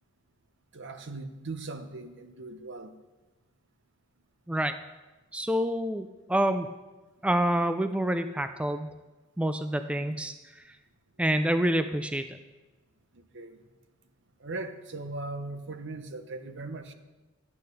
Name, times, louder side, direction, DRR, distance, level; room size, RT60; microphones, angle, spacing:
voice 1, 0.7-2.9 10.0-10.2 13.1-13.6 14.4-16.9, right 2 dB, 60° right, 8 dB, 0.9 m, -39 dB
voice 2, 5.3-6.7 7.2-8.9 9.4-10.6 11.2-12.4, right 1 dB, 5° right, 9 dB, 0.3 m, -27 dB
11.5 x 8.5 x 5.4 m, 1.2 s
head